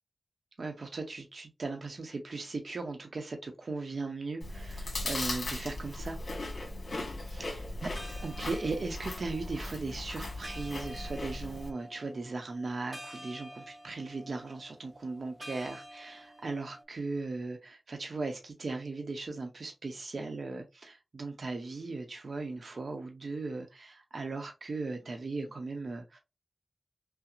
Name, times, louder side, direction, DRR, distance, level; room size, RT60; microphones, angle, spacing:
voice 1, 0.6-6.2 7.2-7.6 7.8-7.9 8.2-26.2, right 3 dB, 70° right, 0.8 m, -38 dB
Chewing mastication, 4.4-11.7, left 2 dB, 75° left, 1.3 m, -38 dB
sound 1, 7.8-16.8, equal, ahead, 1.0 m, -50 dB
5.7 x 2.1 x 2.5 m
wide cardioid pair, 85°, 0 cm